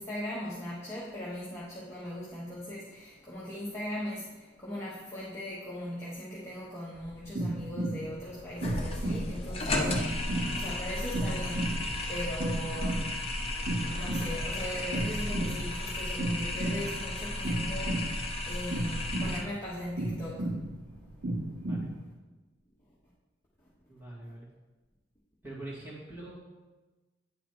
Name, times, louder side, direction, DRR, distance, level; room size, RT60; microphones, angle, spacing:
voice 1, 0.0-12.9 13.9-20.5, left 1 dB, 15° left, -9 dB, 1.1 m, -39 dB
sound 1, 6.9-21.9, right 1 dB, 60° right, 0.7 m, -34 dB
sound 2, 8.3-14.1, left 2 dB, 65° left, 0.8 m, -52 dB
sound 3, 8.6-19.4, left 1 dB, 30° left, 0.7 m, -34 dB
voice 2, 21.4-21.9 23.9-24.5 25.4-26.4, right 1 dB, 10° right, -8 dB, 2.3 m, -44 dB
9.3 x 3.9 x 4.7 m, 1.2 s
head